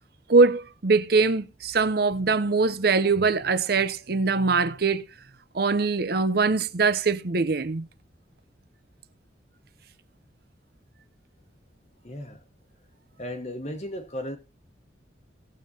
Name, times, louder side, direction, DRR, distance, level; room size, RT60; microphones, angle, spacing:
voice 1, 0.3-5.0 5.5-7.9, right 4 dB, 55° right, 0.7 m, -22 dB
voice 2, 12.0-12.4 13.2-14.4, left 1 dB, 35° left, 1.3 m, -35 dB
18.5 x 7.3 x 2.8 m
head